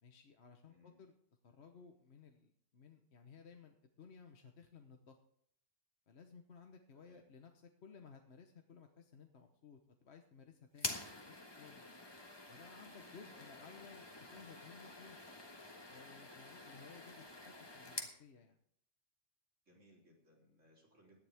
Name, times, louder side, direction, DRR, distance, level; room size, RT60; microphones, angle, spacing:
voice 1, 0.0-1.1 1.4-5.2 6.1-11.8 12.5-14.0 14.3-15.2 15.9-18.6, left 5 dB, 60° left, 4 dB, 1.3 m, -58 dB
voice 2, 0.7-1.0 6.9-7.3 13.3-13.9 19.7-21.2, left 1 dB, 85° right, -2 dB, 4.2 m, -66 dB
sound 1, 10.7-18.2, left 2 dB, 20° left, 1.5 m, -48 dB
17.0 x 11.0 x 3.5 m, 0.64 s
omnidirectional pair, 1.2 m